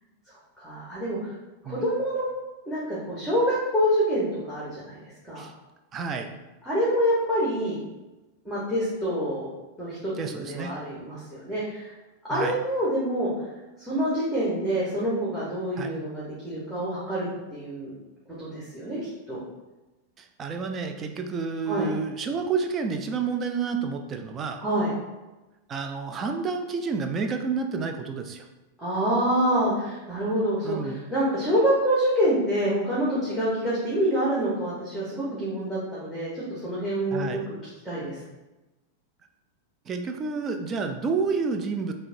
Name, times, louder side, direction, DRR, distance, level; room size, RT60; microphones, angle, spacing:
voice 1, 0.3-1.3 1.6-2.3 2.7-5.0 5.2-5.4 6.6-7.8 8.4-9.5 9.8-11.9 12.2-13.3 13.8-17.3 17.5-17.9 18.4-19.0 19.3-19.4 21.7-21.9 24.6-24.9 28.8-37.5 37.8-38.2, equal, 5° right, -8 dB, 1.2 m, -26 dB
voice 2, 5.9-6.3 10.2-10.7 12.3-12.6 15.8-16.0 20.2-24.6 25.7-28.4 30.6-31.0 37.1-37.4 39.9-41.9, right 5 dB, 25° right, 6 dB, 0.4 m, -29 dB
6.1 x 2.2 x 2.7 m, 1.1 s
figure-of-eight pair, 90°, 0 cm